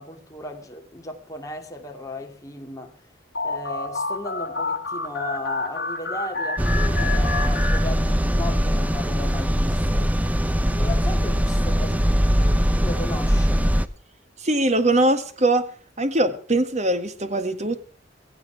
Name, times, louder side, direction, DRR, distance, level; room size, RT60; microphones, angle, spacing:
voice 1, 0.0-2.9 3.4-10.2 10.7-13.6, left 2 dB, 20° left, 2.5 m, -36 dB
sound 1, 3.3-8.5, left 3 dB, 60° left, 5.0 m, -29 dB
sound 2, 6.6-13.9, equal, 10° right, 0.7 m, -21 dB
voice 2, 14.4-15.7 16.0-17.9, right 1 dB, 35° right, 1.7 m, -22 dB
17.0 x 15.0 x 4.7 m
head